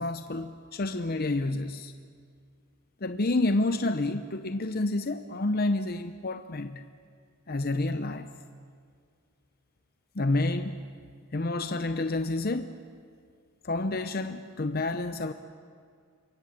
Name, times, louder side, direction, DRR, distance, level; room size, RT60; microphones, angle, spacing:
voice 1, 0.0-1.9 3.0-6.8 7.5-8.3 10.1-10.8 11.3-12.7 13.6-15.3, left 2 dB, 45° left, 0.7 m, -29 dB
27.5 x 23.0 x 7.7 m
head